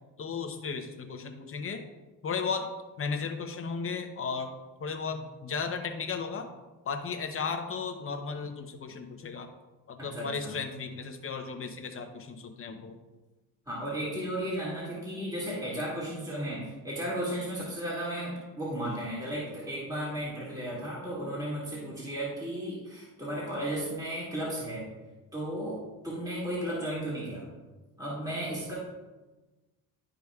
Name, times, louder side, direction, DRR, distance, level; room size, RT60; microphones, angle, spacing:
voice 1, 0.2-1.8 2.2-2.7 3.0-4.5 4.8-6.5 6.8-9.5 9.9-12.9, left 5 dB, 35° left, 5 dB, 0.8 m, -35 dB
voice 2, 10.0-10.5 13.7-24.9 25.3-27.5 28.0-28.8, right 1 dB, 10° right, -6 dB, 2.1 m, -34 dB
11.5 x 5.0 x 2.4 m, 1.2 s
cardioid pair, 115°, 36 cm